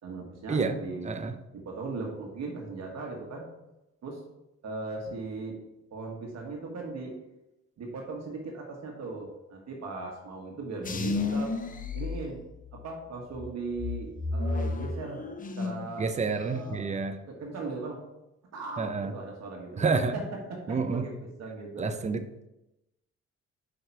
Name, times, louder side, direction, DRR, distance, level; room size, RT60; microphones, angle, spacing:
voice 1, 0.0-1.1 1.5-3.5 4.0-4.2 4.6-5.6 5.9-7.2 7.8-11.5 11.9-12.4 12.7-15.3 15.6-16.1 16.4-16.9 17.3-18.0 18.5-21.9, right 3 dB, 60° right, 0 dB, 1.5 m, -38 dB
sound 1, 10.8-12.9 13.3-15.9 16.2-16.8, left 3 dB, 25° left, 0.6 m, -32 dB
voice 2, 16.0-17.2 18.8-19.1 19.8-20.2 20.7-21.0 21.8-22.2, right 4 dB, 25° right, 9 dB, 0.6 m, -29 dB
5.5 x 5.0 x 4.6 m, 0.92 s
cardioid pair, 90°, 30 cm